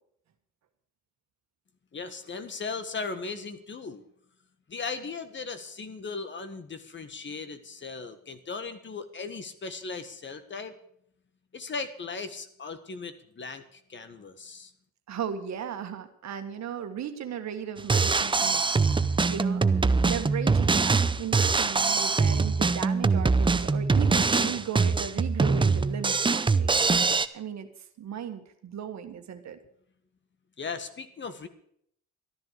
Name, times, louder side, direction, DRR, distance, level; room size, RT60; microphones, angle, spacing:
voice 1, 1.9-4.0 4.7-10.8 11.5-14.7 30.6-31.5, left 4 dB, 40° left, 10 dB, 1.5 m, -37 dB
voice 2, 15.1-26.8 27.3-29.6, right 8 dB, 65° right, 7 dB, 1.7 m, -36 dB
Drum kit, 17.8-27.3, right 4 dB, 15° right, 0.6 m, -23 dB
13.0 x 10.5 x 6.6 m, 0.67 s
cardioid pair, 90°, 30 cm